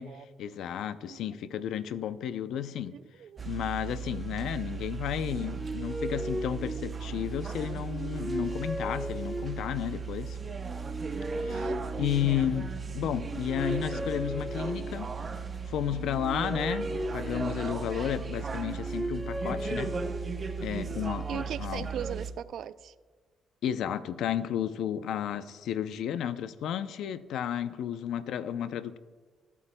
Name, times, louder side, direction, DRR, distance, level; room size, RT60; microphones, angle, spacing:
voice 1, 0.4-2.9 3.4-10.4 11.4-11.7 12.0-15.1 15.7-20.0 20.6-21.9 23.6-29.0, left 10 dB, 80° left, 13 dB, 0.5 m, -32 dB
voice 2, 2.9-3.5 4.1-4.2 11.3-11.9 21.3-22.9, right 9 dB, 70° right, 15 dB, 0.4 m, -39 dB
sound 1, 3.4-22.3, right 5 dB, 35° right, 0.7 m, -37 dB
sound 2, 5.2-7.3 7.8-9.8 10.5-12.6 13.1-15.1 15.8-18.0 18.5-20.5, right 1 dB, 5° right, 1.0 m, -37 dB
21.5 x 8.4 x 2.2 m, 1.4 s
cardioid pair, 90°, 0 cm